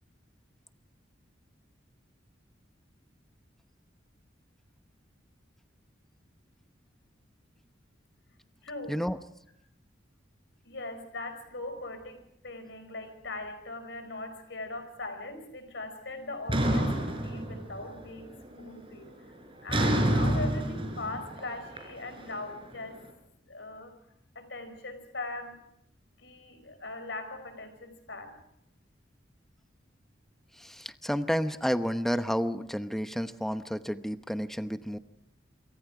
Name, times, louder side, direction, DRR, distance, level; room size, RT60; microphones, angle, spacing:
voice 1, 8.6-8.9 10.6-19.1 19.6-23.0 23.5-23.9 24.3-25.6 26.2-28.3, left 2 dB, 65° left, 9 dB, 4.8 m, -40 dB
sound 1, 16.5-18.0 18.4-18.8 19.7-22.8, right 1 dB, 30° right, 4.8 m, -28 dB
voice 2, 30.5-35.0, equal, ahead, 10 dB, 0.9 m, -31 dB
27.5 x 24.5 x 5.0 m, 0.76 s
head